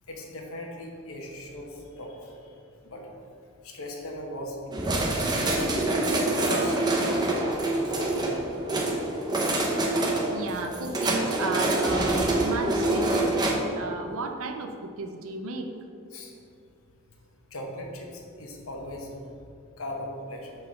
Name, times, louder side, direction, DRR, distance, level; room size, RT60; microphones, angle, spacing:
voice 1, 0.1-2.3 2.8-3.0 3.6-5.1 5.8-8.4 10.5-10.6 16.1-16.3 17.5-19.1 19.8-20.5, left 1 dB, 70° left, 1 dB, 1.0 m, -39 dB
sound 1, 4.7-13.5, right 2 dB, 20° right, 0.8 m, -26 dB
voice 2, 10.3-15.7, right 3 dB, 65° right, 5 dB, 0.5 m, -34 dB
5.7 x 4.4 x 6.3 m, 2.5 s
head